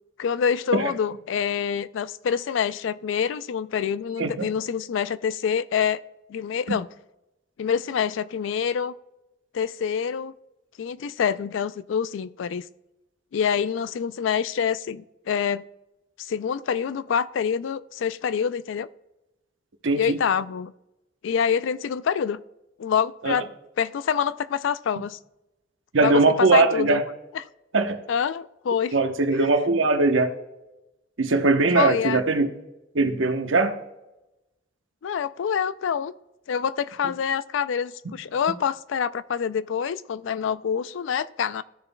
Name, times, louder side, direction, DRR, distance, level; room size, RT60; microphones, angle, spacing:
voice 1, 0.2-6.0 6.3-6.9 7.6-8.9 9.5-10.3 10.8-12.6 13.3-15.6 16.2-18.9 20.0-20.7 21.2-22.4 22.8-23.5 23.8-25.2 26.0-26.1 26.4-27.0 27.3-27.4 28.1-28.9 31.7-32.2 35.0-36.1 36.5-41.6, left 7 dB, 70° left, 17 dB, 0.3 m, -26 dB
voice 2, 19.8-20.2 23.2-23.3 25.9-27.0 27.7-28.0 28.9-30.3 31.2-32.5 32.9-33.8, right 3 dB, 75° right, 7 dB, 0.9 m, -20 dB
14.0 x 6.9 x 2.2 m, 0.96 s
head